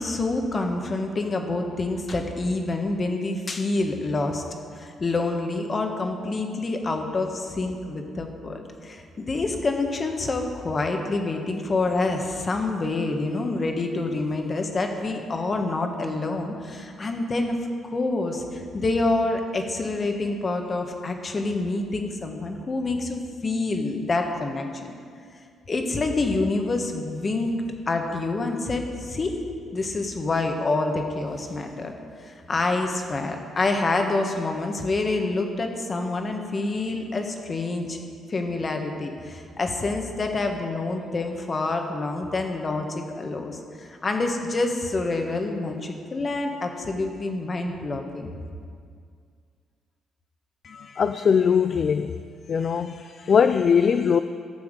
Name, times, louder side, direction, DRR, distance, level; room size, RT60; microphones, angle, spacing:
voice 1, 0.0-4.4 4.8-17.5 17.8-24.9 25.7-27.5 27.9-29.3 29.7-31.9 32.2-38.0 38.3-48.3, left 2 dB, 35° left, 4 dB, 1.4 m, -27 dB
voice 2, 50.6-52.1 52.5-54.2, left 6 dB, 50° left, 10 dB, 0.3 m, -21 dB
13.5 x 6.9 x 5.2 m, 2.2 s
cardioid pair, 90°, 0 cm